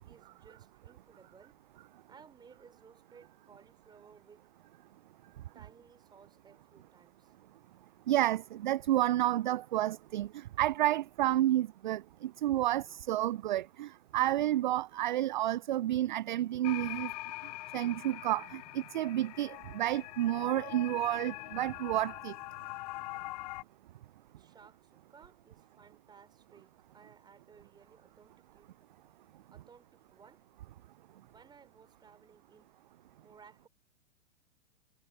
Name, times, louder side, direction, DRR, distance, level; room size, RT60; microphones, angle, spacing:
voice 1, 0.0-1.6 2.1-4.5 5.5-7.3 24.3-28.8 29.5-30.5 31.2-32.7 33.2-33.7, right 6 dB, 10° right, 3.2 m, -59 dB
voice 2, 8.1-17.1 17.7-22.3, right 14 dB, 40° right, 0.4 m, -30 dB
sound 1, 16.6-23.6, left 20 dB, 35° left, 0.9 m, -43 dB
figure-of-eight pair, 105°, 36 cm